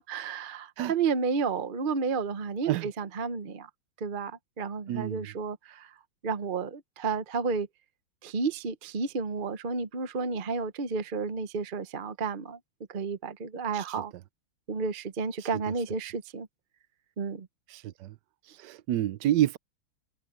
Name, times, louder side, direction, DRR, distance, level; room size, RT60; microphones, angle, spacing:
voice 1, 0.0-3.7 4.0-5.9 6.2-7.7 8.2-12.6 12.9-14.1 14.7-16.5 17.2-17.5 18.5-18.6, right 5 dB, 40° right, 0.8 m, -31 dB
voice 2, 4.9-5.2 13.7-13.8 15.5-15.6 17.7-18.1 18.6-19.6, right 12 dB, 70° right, 1.2 m, -28 dB
omnidirectional pair, 2.1 m